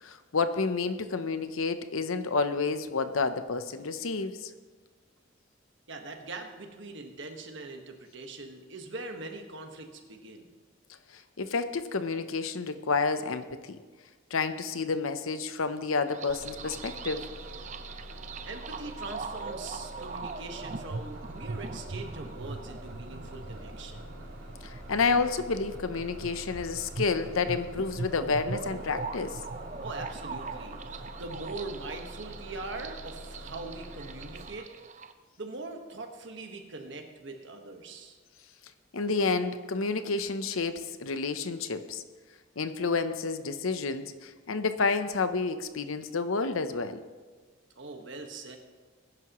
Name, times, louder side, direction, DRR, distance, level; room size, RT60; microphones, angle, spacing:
voice 1, 0.0-4.5 11.4-13.8 14.3-17.2 24.6-29.4 38.9-42.0 42.6-47.0, left 4 dB, 80° left, 10 dB, 0.8 m, -30 dB
voice 2, 5.9-10.5 18.4-24.1 29.8-34.7 35.4-38.2 47.8-48.6, right 3 dB, 60° right, 4 dB, 1.5 m, -42 dB
sound 1, 16.1-35.1, right 4 dB, 35° right, 0.5 m, -41 dB
Bus, 16.3-34.4, equal, 75° right, 2.8 m, -45 dB
20.5 x 11.0 x 3.1 m, 1.4 s
head